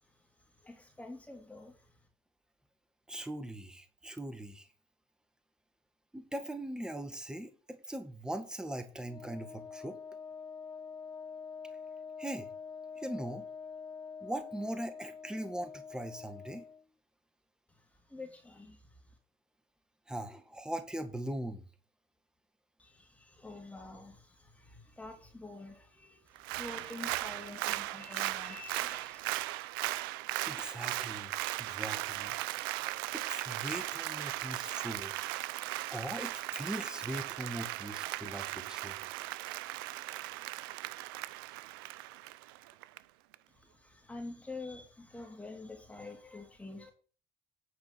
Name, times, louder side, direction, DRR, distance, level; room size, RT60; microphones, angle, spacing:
voice 1, 0.0-2.1 17.7-19.2 22.8-29.3 43.5-46.9, left 2 dB, 10° left, 3.1 m, -48 dB
voice 2, 3.1-4.7 6.1-10.0 12.2-12.5 13.0-13.4 14.2-16.6 20.1-21.6 30.5-32.3 33.1-35.1 35.9-39.0, right 1 dB, 5° right, 1.7 m, -40 dB
Wind instrument woodwind instrument, 9.0-16.8, left 5 dB, 30° left, 0.6 m, -46 dB
Applause, 26.4-43.0 43.3-43.4, right 17 dB, 85° right, 0.5 m, -38 dB
9.7 x 5.1 x 6.2 m
supercardioid pair, 70°, 11 cm